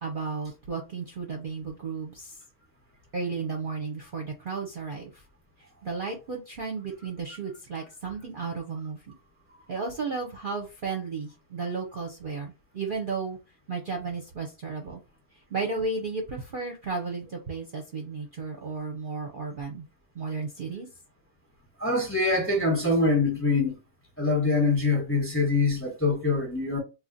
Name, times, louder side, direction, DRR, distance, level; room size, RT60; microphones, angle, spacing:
voice 1, 0.0-2.3 3.1-5.2 5.8-9.1 9.7-13.4 13.7-15.0 15.5-19.8 20.1-20.9, right 4 dB, 45° right, 0.8 m, -33 dB
voice 2, 21.8-23.8 24.2-26.8, left 3 dB, 10° left, 1.0 m, -24 dB
3.0 x 2.3 x 3.9 m
omnidirectional pair, 1.5 m